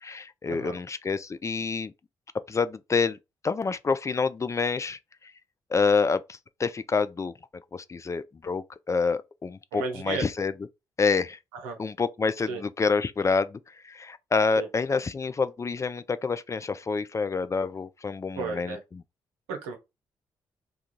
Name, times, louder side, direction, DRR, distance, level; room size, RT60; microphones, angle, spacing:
voice 1, 0.0-1.9 2.5-3.2 3.4-5.0 5.7-7.3 7.7-10.5 11.0-11.4 11.8-13.6 13.9-19.0, left 4 dB, 30° left, 0.3 m, -27 dB
voice 2, 9.7-10.2 11.5-11.8 12.5-12.6 14.6-14.7 18.4-18.8 19.5-19.8, right 4 dB, 85° right, 0.7 m, -33 dB
2.4 x 2.3 x 2.9 m
hypercardioid pair, 45°, 11 cm